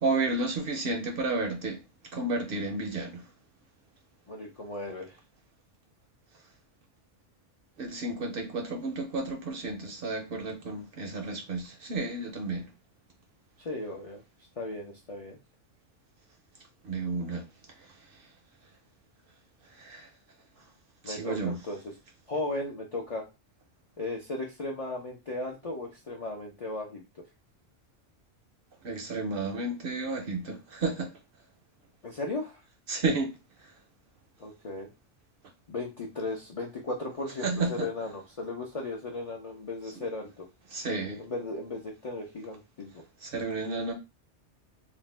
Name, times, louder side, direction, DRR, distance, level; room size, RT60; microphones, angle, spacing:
voice 1, 0.0-1.8 2.1-3.3 7.8-12.7 16.8-17.5 19.7-20.1 21.0-21.6 28.8-31.1 32.9-33.3 37.4-37.9 39.9-40.0 40.7-41.2 43.2-43.9, right 3 dB, 60° right, 0.6 m, -31 dB
voice 2, 4.3-5.2 13.6-14.2 14.6-15.4 21.0-21.8 22.3-23.2 24.0-27.0 32.0-32.6 34.4-34.9 35.7-40.5 41.2-43.0, left 2 dB, 60° left, 0.4 m, -36 dB
2.5 x 2.1 x 3.1 m
omnidirectional pair, 1.2 m